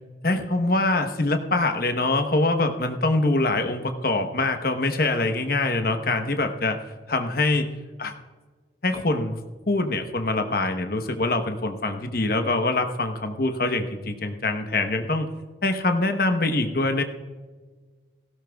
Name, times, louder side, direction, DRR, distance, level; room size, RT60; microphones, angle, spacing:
voice 1, 0.2-6.8 7.1-7.7 8.0-8.1 8.8-9.4 9.7-15.3 15.6-17.0, left 2 dB, 50° left, 6 dB, 1.0 m, -24 dB
17.5 x 16.0 x 2.3 m, 1.4 s
head